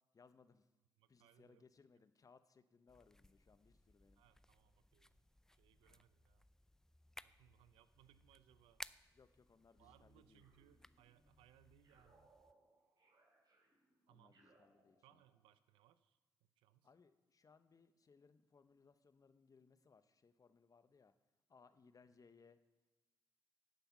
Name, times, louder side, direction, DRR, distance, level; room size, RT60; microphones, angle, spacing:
voice 1, 0.1-0.7 1.1-4.2 5.9-6.0 9.1-10.4 14.1-15.2 16.8-21.1 21.5-22.6, left 5 dB, 40° left, 12 dB, 0.8 m, -68 dB
voice 2, 1.0-1.6 4.2-5.2 5.5-6.5 7.2-8.8 9.8-12.3 14.1-14.4 15.0-16.9, right 12 dB, 80° right, 14 dB, 0.5 m, -70 dB
sound 1, 2.9-12.5, left 1 dB, 5° left, 0.4 m, -61 dB
sound 2, 10.4-11.3 11.8-15.5, right 2 dB, 50° right, 3.1 m, -73 dB
11.5 x 5.6 x 7.1 m, 1.1 s
hypercardioid pair, 50°, 9 cm